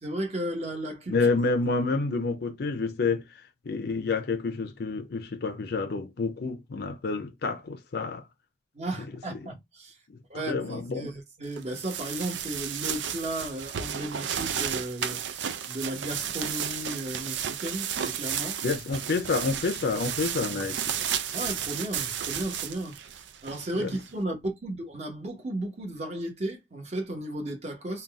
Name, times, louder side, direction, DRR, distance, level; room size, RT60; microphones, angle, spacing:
voice 1, 0.0-1.2 8.7-10.0 10.3-18.6 21.3-28.0, right 1 dB, 40° right, 1.2 m, -34 dB
voice 2, 1.1-3.2 3.7-8.2 10.5-11.1 18.6-20.9 23.8-23.9, left 4 dB, 60° left, 0.5 m, -28 dB
sound 1, 11.5-24.1, right 9 dB, 85° right, 0.5 m, -33 dB
3.9 x 2.3 x 3.5 m
head